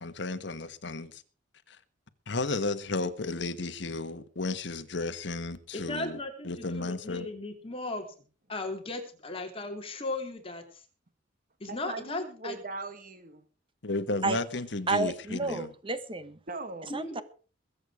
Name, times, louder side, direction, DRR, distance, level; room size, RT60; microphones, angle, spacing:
voice 1, 0.0-1.2 1.7-1.8 2.3-7.3 13.8-15.7, left 3 dB, 65° left, 1.3 m, -33 dB
voice 2, 5.7-8.1 8.5-10.8 11.6-12.6 16.9-17.2, left 2 dB, 30° left, 3.1 m, -37 dB
voice 3, 11.7-13.4 16.5-17.0, right 3 dB, 45° right, 1.6 m, -40 dB
voice 4, 14.9-16.4 16.9-17.2, right 3 dB, 30° right, 1.2 m, -31 dB
22.0 x 8.2 x 4.9 m
head